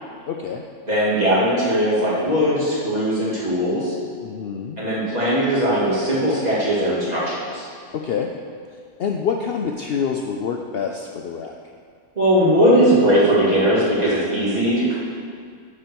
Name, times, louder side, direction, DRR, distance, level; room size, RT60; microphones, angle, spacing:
voice 1, 0.3-0.6 4.2-4.8 8.0-8.3 9.0-11.5, left 6 dB, 60° left, 2 dB, 0.7 m, -26 dB
voice 2, 0.9-3.9 4.8-7.6 12.2-15.0, equal, 30° right, -9 dB, 2.7 m, -19 dB
9.8 x 4.5 x 6.9 m, 2.1 s
omnidirectional pair, 1.4 m